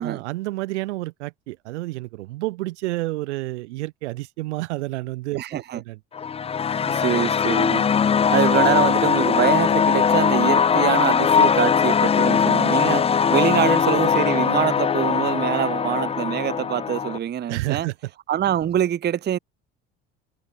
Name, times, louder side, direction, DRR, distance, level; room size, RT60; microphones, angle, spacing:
voice 1, 0.0-6.0 17.5-17.9, right 19 dB, 80° right, 1.1 m, -30 dB
voice 2, 5.3-5.8 6.9-7.9 8.3-17.9 18.3-19.4, right 10 dB, 30° right, 0.6 m, -24 dB
sound 1, 6.1-17.2, left 7 dB, 20° left, 0.4 m, -20 dB
hypercardioid pair, 60°, 35 cm